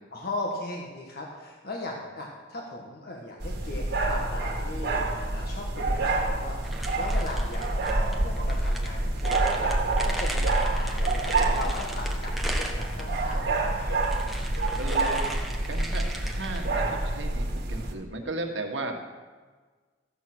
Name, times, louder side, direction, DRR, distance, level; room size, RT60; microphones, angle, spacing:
voice 1, 0.1-5.0 5.3-9.7 10.0-14.1 15.8-16.0, left 2 dB, 55° left, -1 dB, 1.6 m, -38 dB
sound 1, 3.4-17.9, right 2 dB, 55° right, 1.8 m, -27 dB
sound 2, 6.6-13.4 13.8-16.8, right 1 dB, ahead, 1.1 m, -38 dB
voice 2, 14.8-15.3 15.7-19.0, right 2 dB, 75° right, 2 dB, 1.6 m, -35 dB
14.0 x 8.4 x 6.2 m, 1.4 s
head